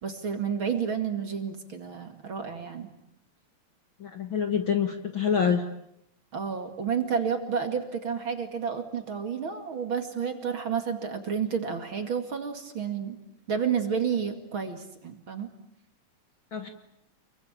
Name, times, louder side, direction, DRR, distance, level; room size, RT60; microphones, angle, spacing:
voice 1, 0.0-2.9 6.3-13.2 13.5-15.5, right 7 dB, 40° right, 7 dB, 2.7 m, -30 dB
voice 2, 4.0-5.6 16.5-16.7, left 7 dB, 45° left, 6 dB, 1.9 m, -26 dB
29.0 x 23.0 x 8.7 m, 0.78 s
omnidirectional pair, 3.7 m